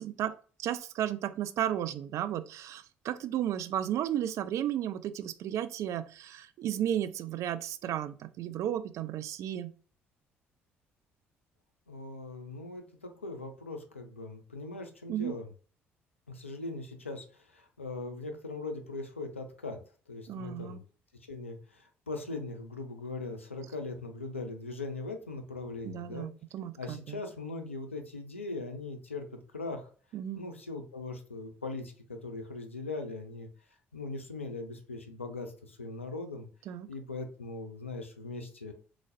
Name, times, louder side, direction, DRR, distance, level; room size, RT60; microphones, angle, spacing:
voice 1, 0.0-9.7 15.1-15.3 20.3-20.8 25.8-27.2 30.1-30.4 36.7-36.9, right 11 dB, 50° right, 11 dB, 0.4 m, -34 dB
voice 2, 11.9-15.5 16.3-19.8 20.1-20.8 21.3-26.3 26.8-29.3 29.5-29.9 30.3-33.5 33.9-36.5 36.9-38.7, left 3 dB, 85° left, 5 dB, 0.5 m, -40 dB
3.8 x 3.1 x 2.5 m, 0.39 s
figure-of-eight pair, 50°, 7 cm